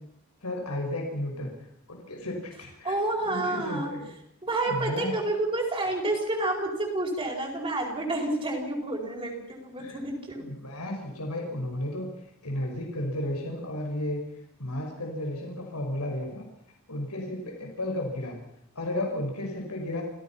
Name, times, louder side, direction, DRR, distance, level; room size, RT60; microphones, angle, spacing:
voice 1, 0.4-1.5 1.9-2.9 3.2-4.1 4.7-5.1 9.8-10.0 10.4-12.1 12.4-14.2 14.6-16.5 16.9-18.4 18.8-20.0, left 1 dB, 90° left, 1 dB, 5.4 m, -33 dB
voice 2, 2.8-3.9 4.4-10.4, right 2 dB, 25° right, 0 dB, 4.9 m, -29 dB
30.0 x 16.0 x 5.9 m, 0.73 s
head